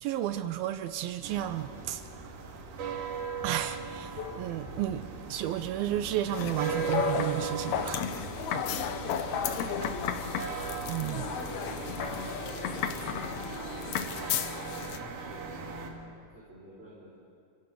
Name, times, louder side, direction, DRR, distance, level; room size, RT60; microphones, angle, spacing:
voice 1, 0.0-2.4 3.4-8.7 10.9-11.2, right 12 dB, 80° right, 10 dB, 2.4 m, -33 dB
sound 1, 1.2-15.9, right 5 dB, 55° right, 3.4 m, -38 dB
sound 2, 4.2-5.3 6.9-7.6 9.3-10.0 12.0-13.8, left 6 dB, 55° left, 2.8 m, -40 dB
sound 3, 6.3-15.0, left 8 dB, 85° left, 1.6 m, -34 dB
voice 2, 8.9-9.9 11.0-14.5 15.0-17.2, right 1 dB, 15° right, -6 dB, 4.3 m, -51 dB
28.5 x 17.0 x 6.8 m, 2.6 s
omnidirectional pair, 4.6 m